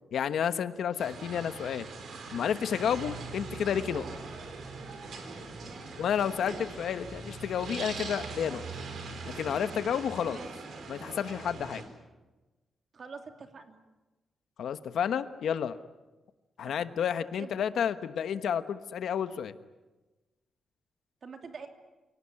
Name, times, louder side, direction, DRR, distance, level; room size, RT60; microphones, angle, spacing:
voice 1, 0.1-1.9 2.3-4.0 6.0-8.6 9.2-10.4 10.9-11.8 14.6-15.8 16.6-19.5, left 8 dB, 70° left, 11 dB, 1.2 m, -31 dB
sound 1, 1.0-11.8, right 4 dB, 60° right, 4.4 m, -41 dB
voice 2, 5.6-5.9 10.2-10.6 12.9-13.8 16.6-16.9 17.4-17.6 21.2-21.7, right 5 dB, 40° right, 5 dB, 2.7 m, -45 dB
28.5 x 18.5 x 9.8 m, 1.2 s
wide cardioid pair, 175°, 0 cm